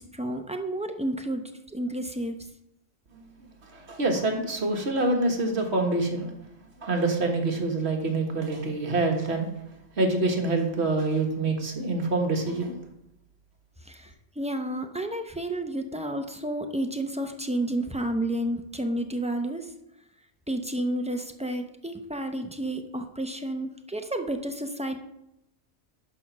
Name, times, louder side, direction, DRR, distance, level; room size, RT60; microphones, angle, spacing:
voice 1, 0.0-2.3 13.8-19.7 20.5-25.0, right 1 dB, 10° right, 5 dB, 0.3 m, -31 dB
voice 2, 3.1-6.4 6.8-9.5 10.0-12.8, right 2 dB, 60° right, 2 dB, 1.6 m, -26 dB
11.0 x 4.3 x 6.0 m, 0.83 s
omnidirectional pair, 1.3 m